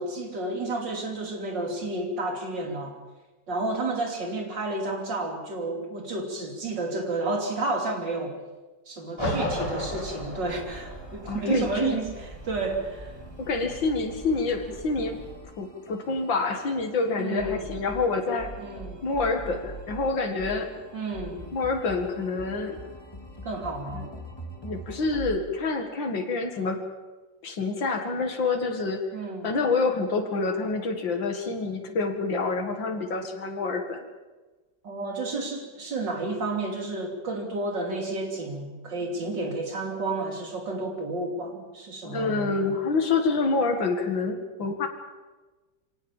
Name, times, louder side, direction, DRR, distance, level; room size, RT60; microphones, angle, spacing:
voice 1, 0.0-3.0 3.5-8.4 8.9-13.1 17.2-17.7 18.6-19.0 20.9-21.4 23.4-24.1 29.1-29.5 34.8-42.7, right 2 dB, 70° right, 3 dB, 3.7 m, -31 dB
voice 2, 9.2-9.5 11.3-11.9 13.4-15.2 15.6-18.5 19.0-20.7 21.5-22.8 23.9-24.1 24.6-26.8 27.4-29.0 29.4-34.0 42.0-44.9, left 3 dB, 85° left, 4 dB, 2.8 m, -27 dB
sound 1, 9.2-15.3, equal, 15° right, 7.7 m, -36 dB
sound 2, 9.4-25.4, right 1 dB, 15° left, 2.5 m, -44 dB
24.5 x 18.0 x 7.3 m, 1.2 s
omnidirectional pair, 2.0 m